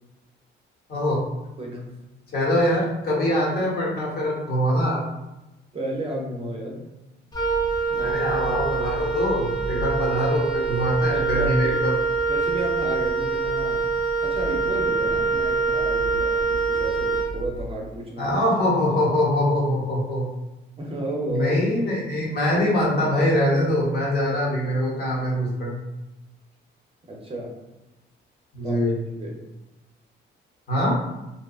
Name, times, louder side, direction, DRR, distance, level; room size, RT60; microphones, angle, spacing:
voice 1, 0.9-1.2 2.3-5.0 8.0-12.0 18.2-20.3 21.3-25.7 28.5-28.9 30.7-30.9, left 1 dB, 50° left, -4 dB, 1.0 m, -23 dB
voice 2, 1.6-1.9 5.7-6.8 7.9-8.1 11.1-11.8 12.3-13.8 14.2-18.5 20.8-21.6 27.1-27.5 28.6-28.8 29.2-29.4, right 1 dB, 30° right, -1 dB, 0.6 m, -32 dB
Wind instrument woodwind instrument, 7.3-17.8, right 4 dB, 20° left, 0.5 m, -25 dB
2.7 x 2.2 x 2.4 m, 1.0 s
cardioid pair, 90°, 20 cm